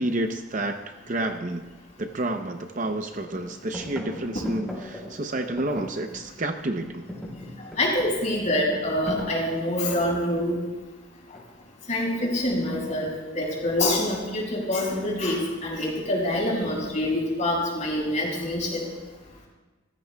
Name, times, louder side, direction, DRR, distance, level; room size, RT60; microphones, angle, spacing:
voice 1, 0.0-1.6 2.0-7.1, right 1 dB, 40° right, 6 dB, 0.7 m, -29 dB
sound 1, 1.9-2.0 2.5-3.0 3.3-6.5 6.8-10.4 11.3-11.8, left 1 dB, ahead, 4.1 m, -39 dB
voice 2, 7.8-10.6 11.9-18.8, left 1 dB, 35° left, -3 dB, 6.0 m, -26 dB
29.0 x 15.0 x 2.3 m, 1.2 s
head